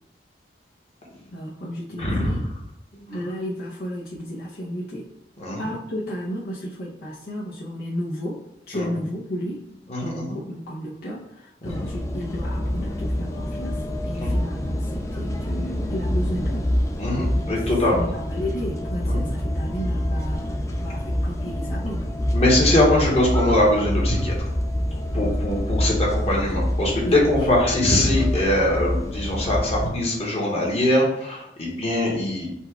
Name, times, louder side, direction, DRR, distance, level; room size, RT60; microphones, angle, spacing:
voice 1, 1.3-2.4 3.1-5.1 5.6-8.4 8.7-9.6 10.0-16.6 17.4-17.6 17.9-20.4 20.8-22.0 24.7-25.5 26.9-27.2, equal, 60° left, -6 dB, 0.7 m, -33 dB
voice 2, 2.0-2.3 2.9-3.0 5.4-5.6 8.7-8.9 9.9-10.4 11.6-11.9 14.2-14.4 17.0-18.1 19.1-19.3 22.3-24.3 25.1-32.5, left 1 dB, 35° left, -3 dB, 1.2 m, -22 dB
sound 1, 11.6-29.9, left 1 dB, 15° left, 0.4 m, -26 dB
4.2 x 2.3 x 4.5 m, 0.78 s
head